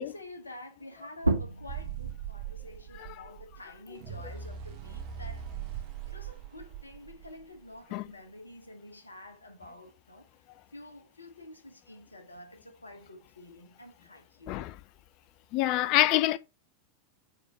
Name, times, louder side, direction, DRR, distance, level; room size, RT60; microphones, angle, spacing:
voice 1, 0.0-5.5 6.1-10.3 10.7-14.7, left 1 dB, 80° left, 1.2 m, -48 dB
sound 1, 1.2-6.4 6.8-8.6, right 2 dB, 85° right, 0.9 m, -37 dB
sound 2, 1.7-7.8, right 9 dB, 45° right, 1.1 m, -41 dB
voice 2, 15.5-16.4, left 15 dB, 40° left, 0.5 m, -26 dB
5.5 x 3.7 x 4.7 m
figure-of-eight pair, 90°, 0 cm